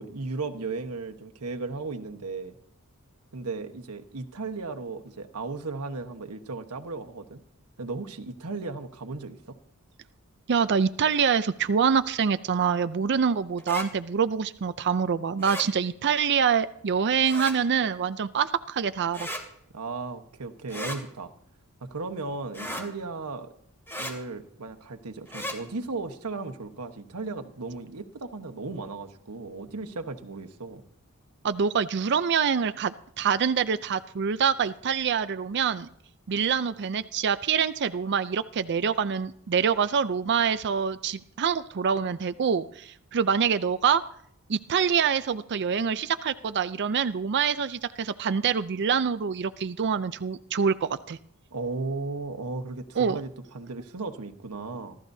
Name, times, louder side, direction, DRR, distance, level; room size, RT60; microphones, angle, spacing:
voice 1, 0.0-2.6 3.3-7.4 7.8-9.6 19.7-21.3 21.9-23.5 24.0-30.8 51.5-55.0, right 3 dB, 90° right, 5 dB, 1.2 m, -35 dB
voice 2, 10.5-19.3 31.4-35.9 36.3-44.0 44.5-51.2 53.0-53.2, right 6 dB, 50° right, 12 dB, 0.5 m, -25 dB
sound 1, 13.6-13.9 15.4-15.7 17.2-17.6 19.1-19.4 20.7-21.0 22.5-22.9 23.9-24.1 25.3-25.6, equal, 10° left, 2.6 m, -35 dB
26.0 x 13.0 x 2.7 m, 0.68 s
head